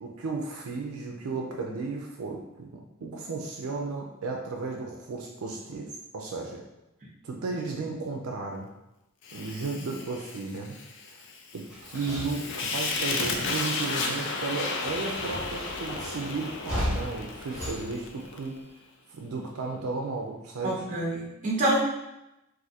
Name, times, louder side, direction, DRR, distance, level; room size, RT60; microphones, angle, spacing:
voice 1, 0.0-2.7 3.0-5.9 6.1-6.6 7.2-8.7 9.3-10.8 11.1-11.2 11.5-18.6 19.2-20.8, right 3 dB, 85° right, 0 dB, 0.5 m, -34 dB
Fire, 9.2-18.5, left 3 dB, 55° left, 0.4 m, -34 dB
sound 1, 11.6-14.6 14.8-18.7, equal, 15° left, 1.1 m, -37 dB
voice 2, 20.6-21.8, right 1 dB, 35° right, -4 dB, 0.9 m, -27 dB
2.6 x 2.5 x 4.1 m, 0.91 s
head